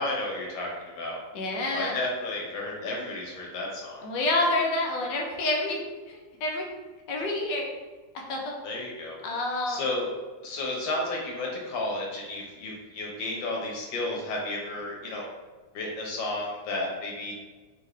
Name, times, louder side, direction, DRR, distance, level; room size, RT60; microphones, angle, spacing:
voice 1, 0.0-1.2 1.7-4.0 8.6-9.2 9.7-10.1 10.4-15.3 15.7-17.3, left 2 dB, 90° left, -2 dB, 1.8 m, -32 dB
voice 2, 1.3-2.0 4.0-5.8 6.1-6.7 7.1-7.7 8.3-8.5 9.2-9.8, left 2 dB, 70° left, 0 dB, 1.4 m, -28 dB
4.0 x 3.7 x 3.3 m, 1.3 s
omnidirectional pair, 2.0 m